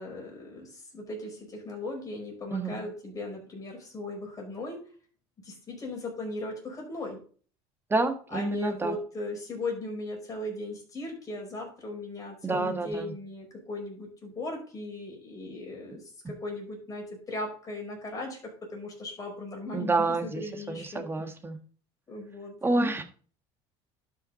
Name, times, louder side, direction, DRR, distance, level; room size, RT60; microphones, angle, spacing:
voice 1, 0.0-4.8 5.4-7.2 8.3-21.0 22.1-22.6, left 2 dB, 25° left, 0 dB, 5.3 m, -38 dB
voice 2, 2.5-2.8 7.9-8.9 12.4-13.1 19.7-20.4 20.7-21.6 22.6-23.0, right 3 dB, 15° right, 8 dB, 1.4 m, -28 dB
11.5 x 5.9 x 4.0 m, 0.41 s
cardioid pair, 115°, 13 cm